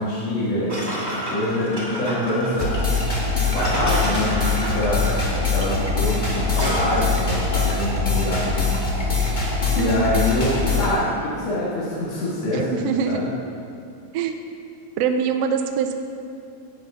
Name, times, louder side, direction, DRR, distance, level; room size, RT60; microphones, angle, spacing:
voice 1, 0.0-5.2 5.5-8.8 9.7-13.3, left 1 dB, 65° left, -9 dB, 2.8 m, -25 dB
sound 1, 0.7-7.2, equal, 10° right, 1.7 m, -30 dB
sound 2, 2.6-10.9, left 3 dB, 25° left, 1.0 m, -23 dB
voice 2, 9.8-10.2 12.5-13.2 14.1-14.4 15.0-16.0, right 7 dB, 80° right, 6 dB, 1.4 m, -24 dB
10.0 x 8.4 x 5.5 m, 2.5 s
omnidirectional pair, 3.3 m